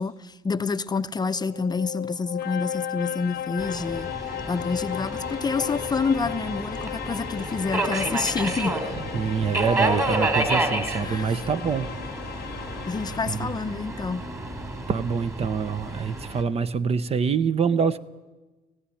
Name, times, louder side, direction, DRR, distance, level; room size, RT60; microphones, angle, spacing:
voice 1, 0.0-4.1 4.5-8.8 11.0-11.4 12.8-14.3, left 4 dB, 25° left, 11 dB, 0.7 m, -28 dB
sound 1, 1.2-14.0, left 11 dB, 70° left, 0.9 m, -36 dB
Subway metro underground, 3.6-16.4, right 2 dB, 20° right, 2.9 m, -30 dB
voice 2, 9.1-11.9 13.3-13.5 14.9-18.0, right 6 dB, 35° right, 14 dB, 0.8 m, -25 dB
17.0 x 16.0 x 10.0 m, 1.2 s
cardioid pair, 110°, 17 cm